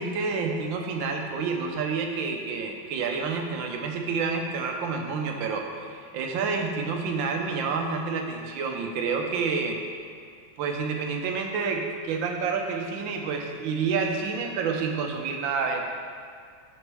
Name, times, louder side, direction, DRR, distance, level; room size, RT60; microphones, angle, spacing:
voice 1, 0.0-9.8 10.6-15.8, right 5 dB, 70° right, 3 dB, 1.5 m, -29 dB
6.5 x 5.4 x 6.1 m, 2.2 s
omnidirectional pair, 2.3 m